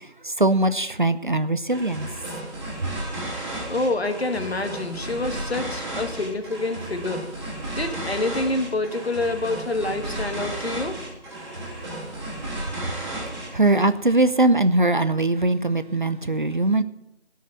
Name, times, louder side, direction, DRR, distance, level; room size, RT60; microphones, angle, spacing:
voice 1, 0.4-2.1 13.5-16.8, right 2 dB, 45° right, 13 dB, 0.6 m, -21 dB
sound 1, 1.7-13.9, right 1 dB, 25° right, 3.5 m, -33 dB
voice 2, 3.7-7.3 7.8-11.0, left 2 dB, 65° left, 7 dB, 1.7 m, -27 dB
13.5 x 6.5 x 9.4 m, 0.87 s
figure-of-eight pair, 165°, 33 cm